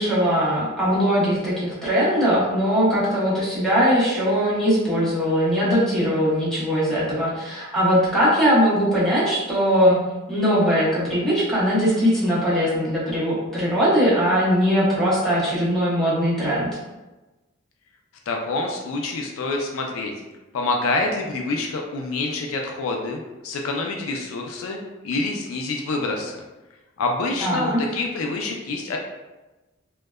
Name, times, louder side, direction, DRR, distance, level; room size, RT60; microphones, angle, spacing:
voice 1, 0.0-10.0 10.3-16.7 27.4-27.8, equal, ahead, -10 dB, 0.9 m, -20 dB
voice 2, 18.3-20.1 20.5-24.8 25.0-26.4 27.0-29.0, left 3 dB, 75° left, 1 dB, 0.4 m, -27 dB
2.7 x 2.1 x 2.2 m, 1.1 s
head